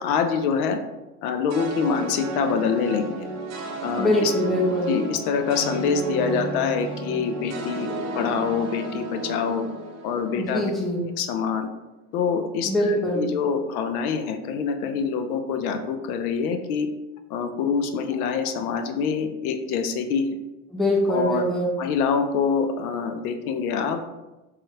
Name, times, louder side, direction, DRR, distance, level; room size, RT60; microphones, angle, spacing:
voice 1, 0.0-0.8 1.2-3.3 3.8-4.3 4.9-9.7 10.0-10.7 11.2-11.7 12.1-16.9 17.3-20.3 21.1-21.4 21.8-24.0, left 6 dB, 75° left, 6 dB, 0.5 m, -25 dB
sound 1, 1.5-10.8, right 3 dB, 35° right, 0.7 m, -33 dB
voice 2, 4.0-4.9 10.4-11.0 12.7-13.2 20.7-21.7, equal, ahead, -2 dB, 0.5 m, -23 dB
3.1 x 2.3 x 3.1 m, 1.0 s
hypercardioid pair, 95°, 45 cm